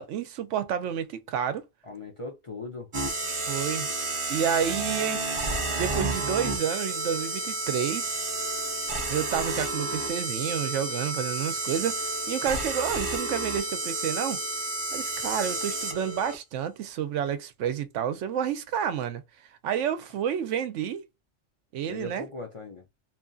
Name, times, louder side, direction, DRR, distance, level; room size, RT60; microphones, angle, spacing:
voice 1, 0.0-1.6 3.5-3.9 4.3-5.2 5.7-8.2 9.1-14.4 14.9-19.2 19.6-21.1 21.7-22.2, right 8 dB, 80° right, 0.9 m, -30 dB
voice 2, 1.8-2.9 21.9-22.9, left 2 dB, 35° left, 0.5 m, -39 dB
sound 1, 2.9-16.3, right 2 dB, 35° right, 0.5 m, -31 dB
2.9 x 2.3 x 2.5 m
omnidirectional pair, 1.2 m